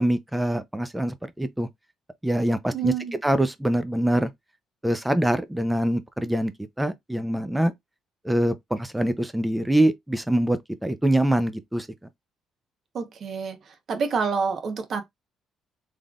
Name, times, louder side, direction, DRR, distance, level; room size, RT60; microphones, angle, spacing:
voice 1, 0.0-1.7 2.2-2.9 3.2-4.3 4.8-6.5 6.8-7.7 8.2-11.9, right 1 dB, 5° right, 0.6 m, -24 dB
voice 2, 2.7-3.2 12.9-13.6 13.9-15.0, right 5 dB, 50° right, 1.0 m, -27 dB
3.7 x 3.3 x 2.4 m
cardioid pair, 110°, 0 cm